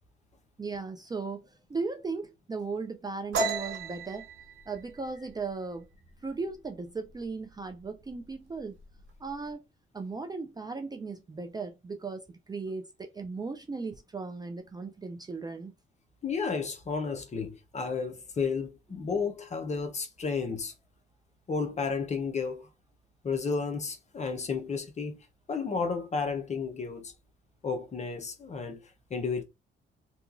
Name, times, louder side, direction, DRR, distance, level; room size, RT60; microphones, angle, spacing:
voice 1, 0.6-4.3 4.7-5.9 6.2-8.8 9.2-9.6 9.9-15.7, right 4 dB, 20° right, 0.4 m, -37 dB
sound 1, 3.3-6.8 7.1-7.4 7.8-8.3 8.6-9.4, right 3 dB, 70° right, 1.2 m, -35 dB
voice 2, 16.2-20.7 21.5-22.7 23.2-25.2 25.5-27.1 27.6-29.4, left 5 dB, 35° left, 0.7 m, -32 dB
2.8 x 2.3 x 2.5 m
cardioid pair, 90°, 20 cm